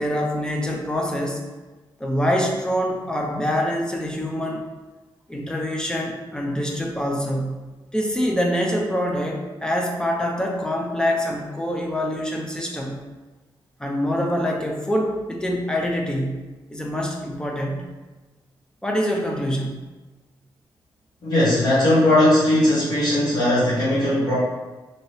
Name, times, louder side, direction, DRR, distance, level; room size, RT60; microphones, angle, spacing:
voice 1, 0.0-1.4 2.0-4.6 5.3-13.0 13.8-17.9 18.8-19.9, equal, 10° left, 0 dB, 0.4 m, -25 dB
voice 2, 21.2-24.4, left 1 dB, 45° left, -9 dB, 0.9 m, -18 dB
2.7 x 2.7 x 3.1 m, 1.2 s
wide cardioid pair, 145°, 9 cm